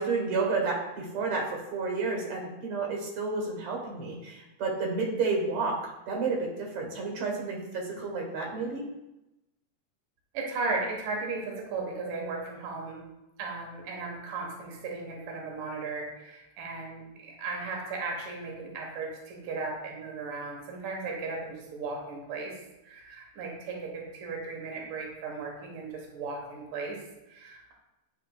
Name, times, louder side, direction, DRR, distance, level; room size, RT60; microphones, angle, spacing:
voice 1, 0.0-5.7 6.1-6.4 6.7-8.8, right 4 dB, 65° right, 0 dB, 2.4 m, -30 dB
voice 2, 10.3-13.0 13.4-22.5 22.8-27.0 27.3-27.7, right 3 dB, 80° right, -1 dB, 2.7 m, -36 dB
11.5 x 4.0 x 2.3 m, 0.95 s
omnidirectional pair, 3.7 m